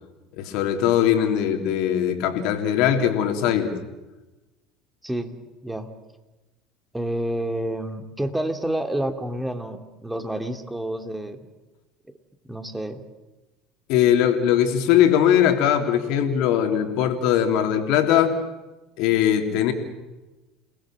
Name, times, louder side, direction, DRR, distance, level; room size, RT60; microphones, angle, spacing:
voice 1, 0.4-3.7 13.9-18.3 19.0-19.7, left 10 dB, 60° left, 5 dB, 3.3 m, -20 dB
voice 2, 5.0-5.4 5.6-5.9 6.9-11.4 12.4-13.0, right 1 dB, 5° right, 6 dB, 2.8 m, -29 dB
29.5 x 20.0 x 7.7 m, 1.1 s
figure-of-eight pair, 65°, 0 cm